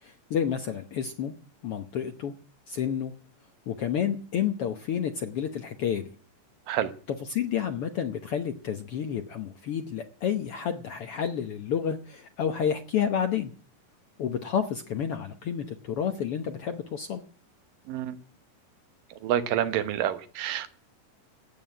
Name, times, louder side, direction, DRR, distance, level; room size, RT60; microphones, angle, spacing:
voice 1, 0.0-1.3 1.6-2.3 2.7-3.1 3.7-6.1 7.1-13.5 14.2-17.2, left 8 dB, 70° left, 1.4 m, -30 dB
voice 2, 19.2-20.7, right 11 dB, 85° right, 2.8 m, -28 dB
14.0 x 9.3 x 8.8 m
omnidirectional pair, 3.8 m